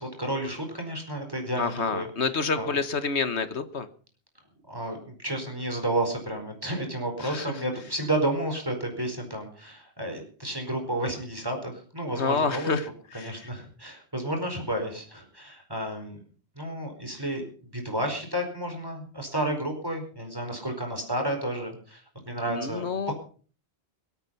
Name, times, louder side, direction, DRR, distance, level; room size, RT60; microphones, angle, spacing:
voice 1, 0.0-2.7 4.7-12.7 13.1-16.2 16.6-17.4 17.7-23.1, right 1 dB, 20° right, 2 dB, 4.8 m, -31 dB
voice 2, 1.6-3.9 7.2-7.5 12.2-12.8 13.2-13.3 22.5-23.1, left 5 dB, 90° left, 11 dB, 1.7 m, -28 dB
25.0 x 9.0 x 5.5 m, 0.43 s
omnidirectional pair, 1.1 m